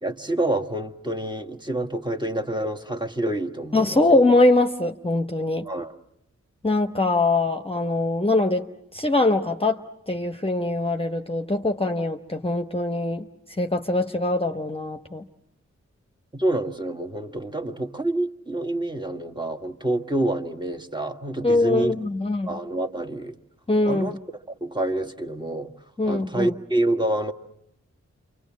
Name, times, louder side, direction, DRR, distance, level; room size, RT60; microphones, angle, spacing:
voice 1, 0.0-4.2 5.7-5.9 16.3-21.9 22.5-23.4 23.9-24.2 24.5-25.7 26.1-27.3, right 1 dB, 15° right, 5 dB, 1.7 m, -27 dB
voice 2, 3.7-5.6 6.6-8.7 8.9-9.8 10.1-13.3 13.6-15.2 21.4-22.6 23.7-24.2 26.0-26.5, left 2 dB, 20° left, 5 dB, 1.1 m, -22 dB
28.0 x 25.0 x 7.4 m, 0.76 s
cardioid pair, 55°, 29 cm